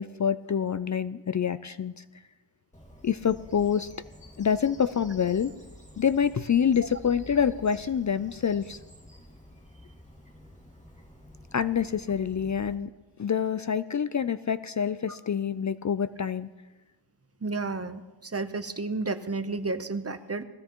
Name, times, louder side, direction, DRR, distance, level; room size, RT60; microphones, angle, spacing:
voice 1, 0.0-2.0 3.0-3.9 4.4-5.5 6.0-8.8 11.5-12.9 13.2-16.5, left 7 dB, 45° left, 14 dB, 0.4 m, -26 dB
Bird vocalization bird call bird song, 2.7-12.8, left 1 dB, 15° left, 2.1 m, -50 dB
voice 2, 17.4-20.4, right 3 dB, 35° right, 10 dB, 0.8 m, -32 dB
19.5 x 15.5 x 3.0 m, 1.2 s
wide cardioid pair, 55°, 43 cm